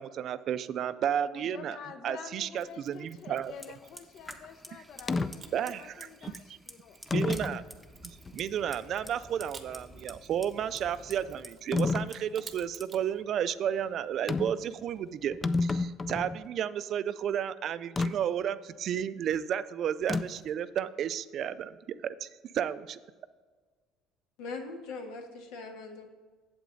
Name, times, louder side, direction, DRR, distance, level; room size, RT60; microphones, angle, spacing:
voice 1, 0.0-1.8 2.0-3.5 5.5-6.3 7.1-7.6 8.3-15.3 15.6-21.8 22.0-22.3 22.5-23.0, right 9 dB, 50° right, 14 dB, 0.4 m, -32 dB
voice 2, 1.2-7.0, left 7 dB, 55° left, 9 dB, 0.7 m, -48 dB
Mechanisms, 2.5-4.5 5.0-13.1, right 6 dB, 30° right, 0.7 m, -55 dB
Fire, 3.4-15.3, equal, 5° left, 0.8 m, -51 dB
sound 1, 5.1-5.3 6.2-6.4 7.1-7.6 8.3-8.4 11.7-12.1 14.3-14.6 15.0-15.1 15.3-16.4 18.0-18.1 20.1-20.5, left 3 dB, 20° left, 0.3 m, -29 dB
voice 3, 24.4-26.1, left 3 dB, 85° left, 3 dB, 1.5 m, -41 dB
8.1 x 7.8 x 3.9 m, 1.4 s
cardioid pair, 125°, 0 cm